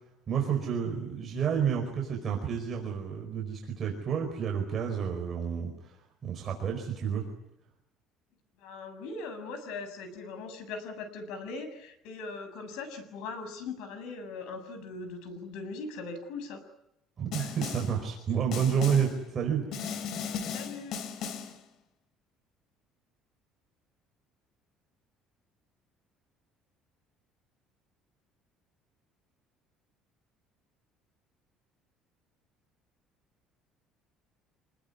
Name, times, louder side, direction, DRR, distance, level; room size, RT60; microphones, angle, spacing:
voice 1, 0.3-6.0 6.2-7.2 17.2-19.9, right 7 dB, 30° right, 1 dB, 5.0 m, -30 dB
voice 2, 8.6-16.6 20.5-20.9, left 3 dB, 85° left, 9 dB, 7.1 m, -40 dB
Snare drum, 17.3-18.0 18.5-19.2 19.7-21.6, left 6 dB, 55° left, 2.8 m, -36 dB
27.0 x 20.5 x 9.6 m, 0.81 s
cardioid pair, 160°, 0 cm